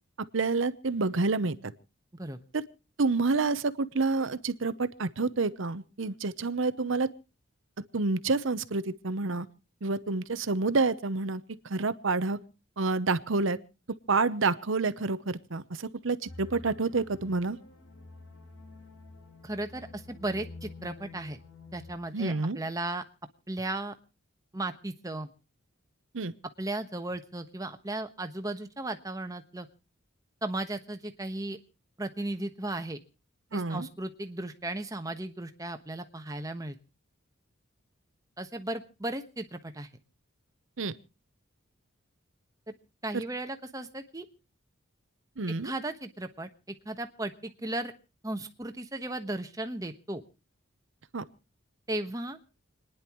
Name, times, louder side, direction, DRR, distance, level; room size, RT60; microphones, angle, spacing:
voice 1, 0.3-1.7 2.5-2.6 3.0-7.1 7.9-9.5 9.8-12.4 12.8-13.6 14.1-17.6 22.1-22.6 26.1-26.3 33.5-33.9 40.8-40.9 43.1-43.2 45.4-45.7 51.1-51.2, right 3 dB, 65° right, 15 dB, 0.8 m, -28 dB
sound 1, 16.3-22.0, left 3 dB, 75° left, 7.8 m, -48 dB
voice 2, 19.4-21.4 21.7-23.0 23.5-23.9 24.5-25.3 26.6-29.7 30.4-31.6 32.0-33.0 33.5-36.8 38.4-39.9 42.7-42.8 43.0-44.3 45.5-47.9 48.2-50.2 51.9-52.4, right 2 dB, 15° right, 7 dB, 1.2 m, -35 dB
29.5 x 10.5 x 3.0 m, 0.33 s
head